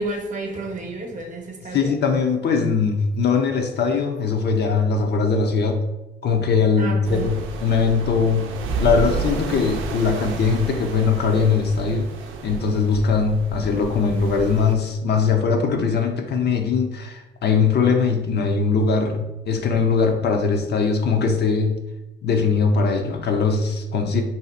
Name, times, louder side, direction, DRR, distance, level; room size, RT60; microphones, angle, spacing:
voice 1, 0.0-2.0 6.8-7.3, right 2 dB, 40° right, 2 dB, 0.8 m, -30 dB
voice 2, 1.7-5.8 6.2-8.5 8.8-12.1 12.4-21.8 22.2-24.2, left 5 dB, 55° left, 4 dB, 0.6 m, -21 dB
sound 1, 7.0-14.7, right 3 dB, 85° right, 0.5 m, -31 dB
2.7 x 2.4 x 4.1 m, 0.96 s
cardioid pair, 90°, 20 cm